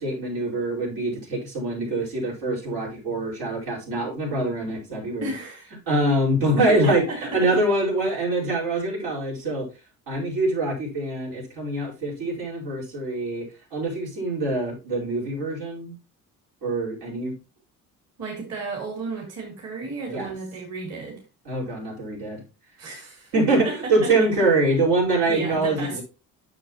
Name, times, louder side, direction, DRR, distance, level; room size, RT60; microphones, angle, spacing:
voice 1, 0.0-5.3 5.9-9.7 10.1-13.4 13.7-15.9 16.6-17.3 20.1-20.3 21.4-22.4 23.3-23.6 23.9-26.0, right 2 dB, 85° right, 5.1 m, -24 dB
voice 2, 5.2-5.7 6.7-7.6 18.2-21.2 22.8-24.3 25.3-26.0, right 3 dB, 45° right, 3.0 m, -33 dB
9.5 x 6.6 x 2.9 m
cardioid pair, 115°, 35 cm